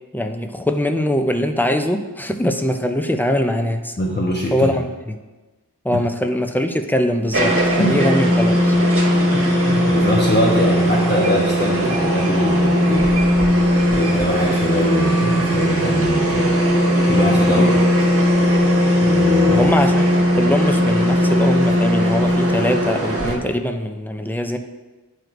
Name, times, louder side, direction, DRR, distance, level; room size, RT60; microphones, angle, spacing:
voice 1, 0.1-4.0 4.5-5.2 5.8-8.8 17.5-17.8 19.5-20.1 20.4-24.6, left 1 dB, 5° left, 6 dB, 0.5 m, -22 dB
voice 2, 4.0-4.8 5.9-6.0 7.8-8.0 9.3-13.1 13.9-16.5 17.1-17.7 18.0-18.1 19.0-19.9, left 1 dB, 25° left, -4 dB, 0.9 m, -22 dB
sound 1, 7.3-23.4, equal, 35° right, 1.2 m, -18 dB
11.0 x 4.6 x 2.6 m, 1.2 s
wide cardioid pair, 65°, 40 cm